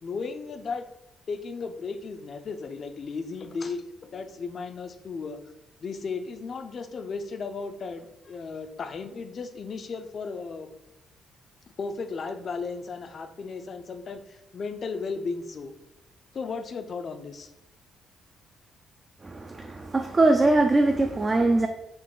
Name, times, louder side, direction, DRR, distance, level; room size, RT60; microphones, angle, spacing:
voice 1, 0.0-0.8 1.3-5.4 5.8-10.7 11.8-15.7 16.3-17.5, left 4 dB, 50° left, 8 dB, 0.4 m, -35 dB
voice 2, 19.2-21.7, right 2 dB, 25° right, 5 dB, 0.3 m, -22 dB
3.9 x 2.4 x 3.7 m, 0.89 s
cardioid pair, 90°, 0 cm